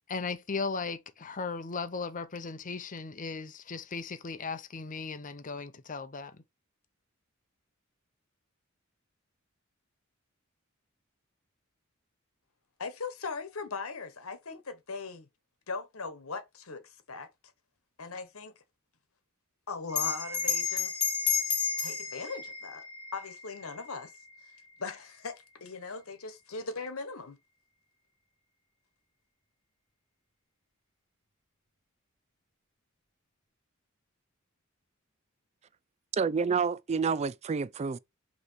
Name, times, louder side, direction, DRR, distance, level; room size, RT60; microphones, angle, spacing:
voice 1, 0.1-6.4, left 4 dB, 40° left, 0.7 m, -37 dB
voice 2, 12.8-15.3 15.7-17.3 18.0-18.5 19.7-21.0 21.8-22.9 23.1-24.1 24.8-27.4, left 4 dB, 85° left, 1.2 m, -39 dB
Bell, 19.9-24.8, left 6 dB, 20° left, 1.8 m, -32 dB
voice 3, 36.1-38.0, right 5 dB, 30° right, 0.3 m, -29 dB
5.5 x 3.2 x 5.5 m
head